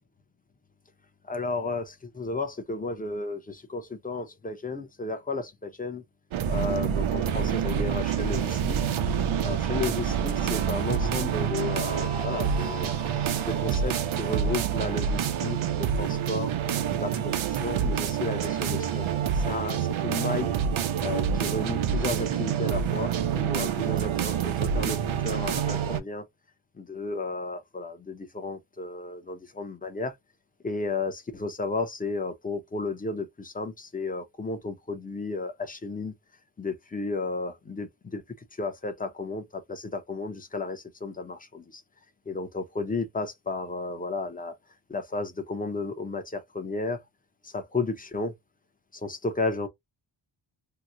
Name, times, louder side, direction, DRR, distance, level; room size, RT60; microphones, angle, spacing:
voice 1, 1.3-6.0 6.5-8.8 9.4-12.9 13.5-16.5 17.0-19.0 19.3-20.5 21.0-26.2 26.8-30.1 30.6-36.1 36.6-38.2 38.6-41.8 42.3-44.6 44.9-47.0 47.5-48.3 49.0-49.7, left 3 dB, 20° left, 0.6 m, -33 dB
sound 1, 6.3-26.0, right 8 dB, 80° right, 0.7 m, -27 dB
2.9 x 2.1 x 3.7 m
wide cardioid pair, 130°, 48 cm